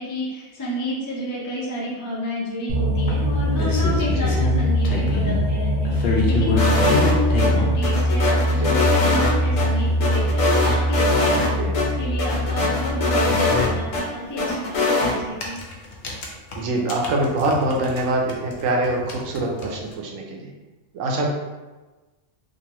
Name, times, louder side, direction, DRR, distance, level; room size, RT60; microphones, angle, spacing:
voice 1, 0.0-11.6 11.9-15.6, equal, 25° left, -6 dB, 0.5 m, -31 dB
sound 1, 2.7-14.0, equal, 60° right, 0.9 m, -22 dB
sound 2, 3.1-5.4 5.9-7.8 8.7-8.8 9.2-9.3 9.5-9.6 9.9-10.0 11.9-12.0 12.3-12.4 14.3-14.5 15.2-18.0 18.3-19.9, left 3 dB, 60° left, 0.7 m, -27 dB
sound 3, 6.6-7.5 7.8-9.7 10.0-11.5 11.7-11.9 12.2-14.0 14.4-15.1, left 2 dB, 80° left, 1.1 m, -22 dB
voice 2, 16.6-20.5 20.9-21.3, right 2 dB, 80° right, 0 dB, 1.0 m, -24 dB
3.0 x 2.5 x 2.9 m, 1.2 s
omnidirectional pair, 1.3 m